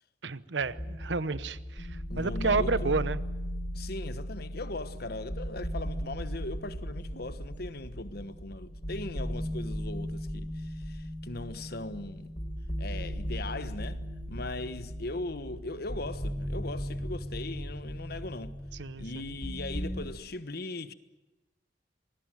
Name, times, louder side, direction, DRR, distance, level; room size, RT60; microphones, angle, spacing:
voice 1, 0.2-3.2 18.7-19.3, right 4 dB, 80° right, 1.0 m, -31 dB
sound 1, 0.6-20.0, equal, 30° left, 4.2 m, -37 dB
voice 2, 2.1-2.9 3.7-12.3 12.8-14.0 14.3-18.5 19.0-20.9, left 2 dB, 60° left, 1.3 m, -39 dB
26.0 x 20.0 x 9.2 m
head